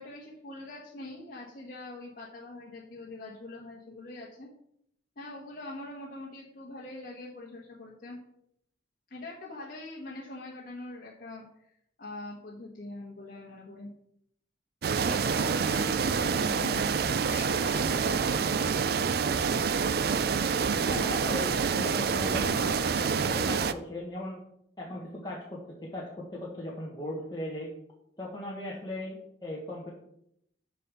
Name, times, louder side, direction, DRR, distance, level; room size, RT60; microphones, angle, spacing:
voice 1, 0.0-4.5 5.2-8.2 9.1-11.4 12.0-13.9 15.0-18.7, left 2 dB, 50° left, -4 dB, 1.3 m, -43 dB
sound 1, 14.8-23.7, right 5 dB, 55° right, 0.4 m, -27 dB
voice 2, 20.8-24.4 24.8-25.6 25.9-27.7 28.2-29.9, left 1 dB, 25° left, -4 dB, 1.3 m, -38 dB
6.9 x 5.1 x 6.2 m, 0.74 s
head